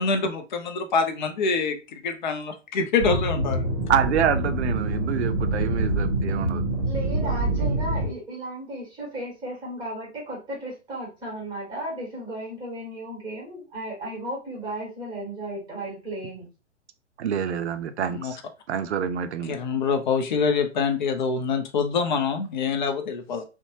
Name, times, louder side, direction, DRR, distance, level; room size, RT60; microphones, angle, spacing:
voice 1, 0.0-3.6 18.1-18.3 19.5-23.4, left 5 dB, 40° left, 0.4 m, -25 dB
sound 1, 3.0-8.1, right 1 dB, 30° right, 0.9 m, -25 dB
voice 2, 3.9-6.6 17.2-18.4 18.7-19.5, right 8 dB, 65° right, 0.5 m, -27 dB
voice 3, 6.8-16.4, right 1 dB, 10° right, 1.3 m, -35 dB
2.6 x 2.1 x 2.8 m
figure-of-eight pair, 110°, 36 cm